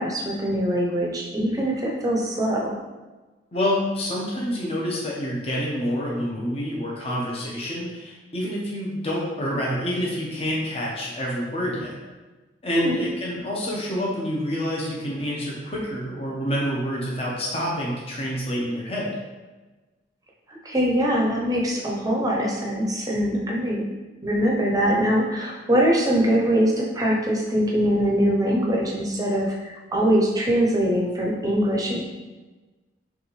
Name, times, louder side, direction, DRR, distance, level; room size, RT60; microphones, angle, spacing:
voice 1, 0.0-2.7 12.7-13.0 20.5-23.8 24.2-32.0, equal, 20° right, -2 dB, 0.7 m, -23 dB
voice 2, 3.5-11.9 12.6-19.2, equal, 35° left, -4 dB, 0.9 m, -27 dB
5.7 x 2.6 x 3.2 m, 1.2 s
head